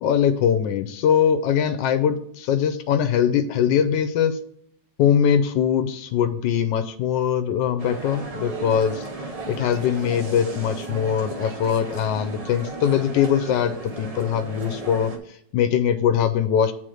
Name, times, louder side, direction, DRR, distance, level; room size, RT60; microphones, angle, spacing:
voice 1, 0.0-4.4 5.0-9.1 9.5-15.1 15.5-16.7, left 8 dB, 85° left, 9 dB, 1.2 m, -22 dB
sound 1, 7.8-15.2, right 3 dB, 70° right, 0.3 m, -35 dB
7.6 x 4.1 x 4.9 m, 0.70 s
omnidirectional pair, 1.9 m